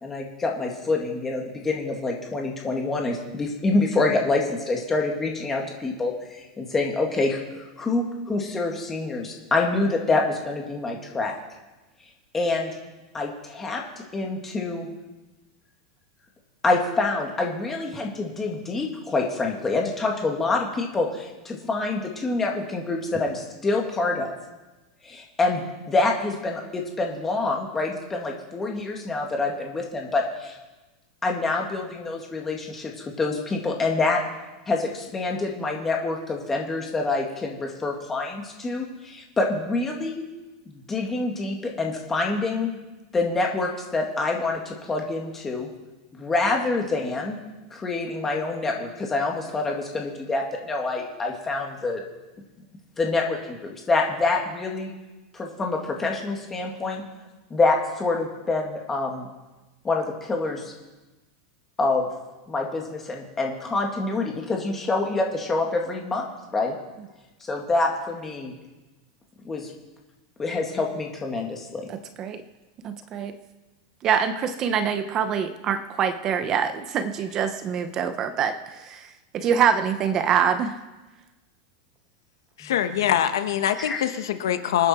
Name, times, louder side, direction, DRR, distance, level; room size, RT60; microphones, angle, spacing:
voice 1, 0.0-11.4 12.3-12.7 13.1-13.8 14.1-14.9 16.6-24.3 25.0-30.6 31.2-34.2 34.7-40.3 40.7-42.7 43.1-45.7 46.2-47.4 47.7-52.0 53.0-54.9 55.3-57.0 57.5-59.3 59.8-60.7 61.8-62.0 62.5-66.8 67.5-68.5 69.4-69.7 70.4-71.9 82.6-82.7 83.8-84.0, left 3 dB, 10° left, 1 dB, 2.1 m, -26 dB
voice 2, 71.9-72.4 72.8-73.3 74.0-80.7, right 7 dB, 25° right, 10 dB, 0.7 m, -25 dB
voice 3, 82.6-84.9, left 10 dB, 85° left, 9 dB, 1.3 m, -23 dB
26.5 x 9.7 x 4.4 m, 1.1 s
supercardioid pair, 170°, 2 cm